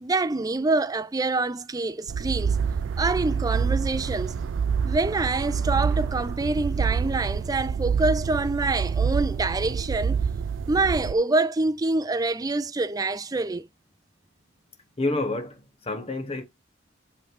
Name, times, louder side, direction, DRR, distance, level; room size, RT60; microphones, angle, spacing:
voice 1, 0.0-2.6 3.0-4.4 4.8-10.2 10.7-13.7, right 3 dB, 20° right, 0.4 m, -26 dB
sound 1, 2.1-11.1, right 6 dB, 80° right, 0.4 m, -27 dB
voice 2, 15.0-16.4, left 2 dB, 30° left, 0.9 m, -29 dB
7.8 x 3.2 x 5.9 m
head